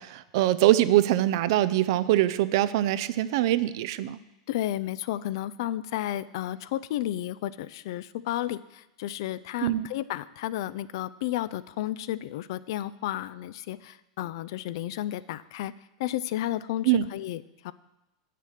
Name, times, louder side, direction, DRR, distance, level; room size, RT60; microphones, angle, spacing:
voice 1, 0.0-4.2 9.6-9.9 16.8-17.1, right 14 dB, 65° right, 15 dB, 0.4 m, -23 dB
voice 2, 4.5-15.7 16.0-17.7, left 13 dB, 65° left, 16 dB, 0.4 m, -32 dB
7.6 x 6.6 x 6.5 m, 0.96 s
hypercardioid pair, 105°, 3 cm